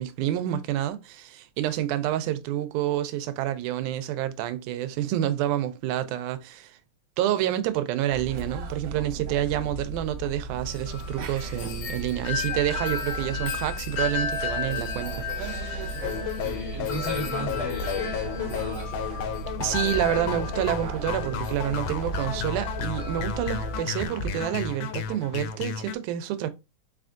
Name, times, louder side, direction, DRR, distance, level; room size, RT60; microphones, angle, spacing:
voice 1, 0.0-6.8 7.2-15.9 19.6-26.5, right 12 dB, 90° right, 2.0 m, -28 dB
sound 1, 8.1-23.8, right 2 dB, 70° right, 1.6 m, -36 dB
Wind chime, 10.7-24.1, left 6 dB, 70° left, 1.2 m, -35 dB
sound 2, 16.0-25.9, left 8 dB, 90° left, 2.0 m, -33 dB
voice 2, 16.4-18.9, equal, 15° right, 1.4 m, -35 dB
4.7 x 3.4 x 2.5 m
omnidirectional pair, 3.4 m